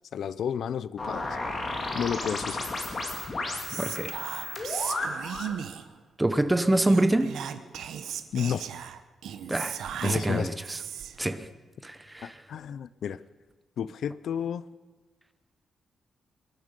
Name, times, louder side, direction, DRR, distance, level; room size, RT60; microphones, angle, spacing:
voice 1, 0.1-1.4 1.9-2.8 8.3-8.6 10.0-10.5 12.2-13.2 13.8-14.6, left 8 dB, 65° left, 0.4 m, -31 dB
sound 1, 1.0-5.6, left 2 dB, 30° left, 2.4 m, -33 dB
Whispering, 3.7-6.0 6.8-11.3, right 9 dB, 90° right, 0.8 m, -37 dB
voice 2, 3.8-4.2 6.2-7.4 9.5-9.8 10.0-10.8 11.2-11.5 11.8-12.4, right 1 dB, 10° right, 0.8 m, -26 dB
23.5 x 11.0 x 5.2 m
wide cardioid pair, 160°, 0 cm